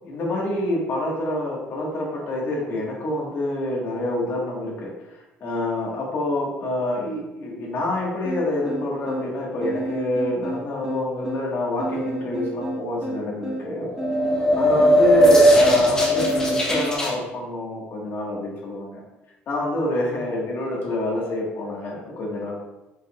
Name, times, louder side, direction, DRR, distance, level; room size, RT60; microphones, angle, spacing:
voice 1, 0.0-13.9 14.5-19.0 19.5-22.6, left 1 dB, 55° left, -3 dB, 1.6 m, -27 dB
sound 1, 8.2-16.9, right 1 dB, 10° right, 1.4 m, -31 dB
sound 2, 13.8-17.1, equal, 15° left, 1.0 m, -18 dB
5.3 x 3.8 x 2.4 m, 0.99 s
cardioid pair, 125°, 4 cm